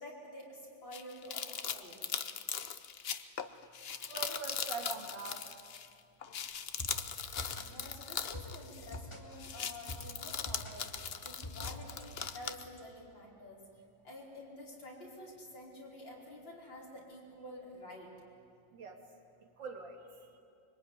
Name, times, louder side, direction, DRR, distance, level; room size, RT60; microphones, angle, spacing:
voice 1, 0.0-2.0 7.6-13.6 14.0-18.1, left 1 dB, 70° left, -3 dB, 5.6 m, -49 dB
sound 1, 0.9-5.9 6.2-9.1 9.3-12.6, left 7 dB, 55° left, 0.7 m, -40 dB
voice 2, 4.1-5.6 18.7-19.0 19.4-20.4, right 4 dB, 70° right, 3 dB, 2.9 m, -44 dB
sound 2, 6.8-12.8, left 1 dB, 15° left, 2.6 m, -46 dB
24.5 x 24.0 x 9.6 m, 2.4 s
omnidirectional pair, 2.1 m